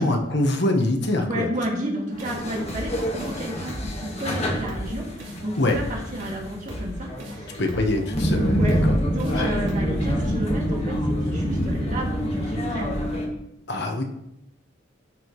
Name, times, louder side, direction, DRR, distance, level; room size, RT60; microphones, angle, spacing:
voice 1, 0.0-1.5 5.6-5.8 7.6-8.9 9.3-9.5 13.7-14.0, left 1 dB, 65° left, 3 dB, 1.2 m, -24 dB
voice 2, 1.3-7.6 8.5-8.8 9.0-13.1, right 1 dB, 40° right, -2 dB, 2.1 m, -31 dB
sound 1, 2.1-13.3, equal, 35° left, 1.6 m, -27 dB
sound 2, 2.2-2.4 2.7-2.9 3.2-3.4 3.7-3.9 4.2-4.4 4.7-4.9 5.2-5.4 5.7-5.9 6.2-6.3 6.7-6.9 7.2-7.4 7.7-7.9 8.2-8.4 8.7-8.9 9.2-9.4 9.7-9.9, equal, 85° right, 2.1 m, -36 dB
13.5 x 4.8 x 3.1 m, 0.80 s
head